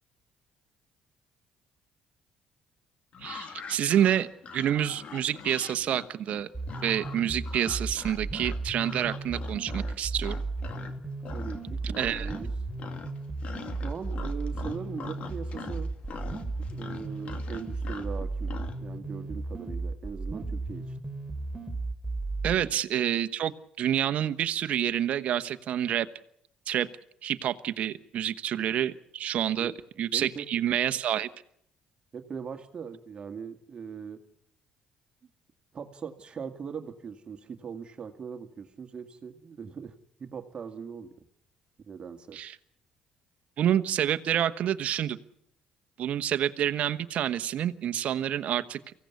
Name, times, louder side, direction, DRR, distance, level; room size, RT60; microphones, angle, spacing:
sound 1, 3.1-10.9 11.2-11.7 11.9-12.5 12.8-18.8, left 6 dB, 55° left, 2.3 m, -43 dB
voice 1, 3.2-4.3 4.5-6.5 6.8-10.4 11.8-12.3 22.4-23.5 23.8-26.1 26.7-26.9 27.2-29.7 30.0-31.3 42.3-42.6 43.6-45.2 46.0-48.8, right 10 dB, 65° right, 11 dB, 1.2 m, -28 dB
sound 2, 6.5-22.5, right 3 dB, 15° right, 3.6 m, -35 dB
voice 2, 11.3-12.5 13.8-15.9 16.6-18.5 18.8-21.0 22.6-22.7 29.6-29.8 30.1-30.5 32.1-34.2 35.7-39.9 40.2-41.1 41.8-42.4, right 6 dB, 45° right, 6 dB, 2.0 m, -40 dB
24.0 x 16.5 x 8.3 m, 0.74 s
supercardioid pair, 70°, 3 cm